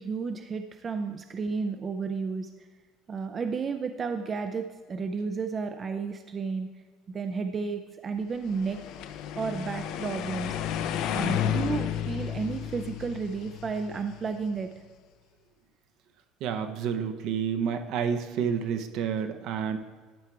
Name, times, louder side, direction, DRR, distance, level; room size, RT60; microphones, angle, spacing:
voice 1, 0.0-2.5 3.1-6.7 7.1-8.8 9.3-10.5 11.1-14.8, right 5 dB, 25° right, 7 dB, 0.4 m, -32 dB
sound 1, 8.5-14.6, left 9 dB, 65° left, 0.5 m, -32 dB
voice 2, 16.4-19.8, right 7 dB, 60° right, 8 dB, 0.7 m, -29 dB
12.0 x 4.6 x 4.7 m, 1.5 s
cardioid pair, 145°, 0 cm